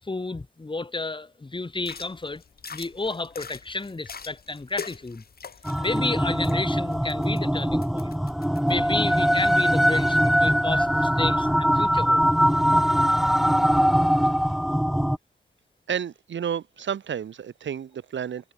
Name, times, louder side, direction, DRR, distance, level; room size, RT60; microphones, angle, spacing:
voice 1, 0.0-2.4 2.7-5.2 5.8-8.1 8.7-12.2, left 3 dB, 25° left, 5.9 m, -31 dB
sound 1, 1.8-8.7, left 6 dB, 55° left, 3.5 m, -43 dB
sound 2, 5.6-15.2, equal, ahead, 0.9 m, -22 dB
voice 2, 15.9-18.5, right 8 dB, 85° right, 3.4 m, -31 dB
wide cardioid pair, 110°, 19 cm